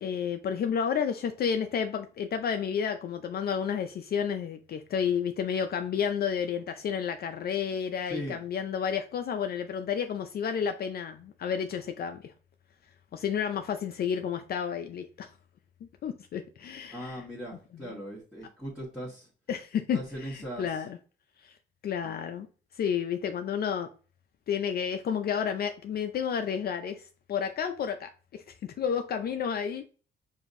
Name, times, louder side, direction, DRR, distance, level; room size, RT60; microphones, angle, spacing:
voice 1, 0.0-12.3 13.1-15.3 16.0-17.2 17.9-18.0 19.5-21.0 21.4-21.6 21.8-22.5 22.7-23.9 24.5-27.0 27.3-29.9, left 7 dB, 50° left, 0.4 m, -31 dB
voice 2, 8.1-8.4 16.9-19.3 19.9-20.8, equal, 5° right, 1.4 m, -39 dB
4.9 x 2.6 x 2.5 m
cardioid pair, 90°, 20 cm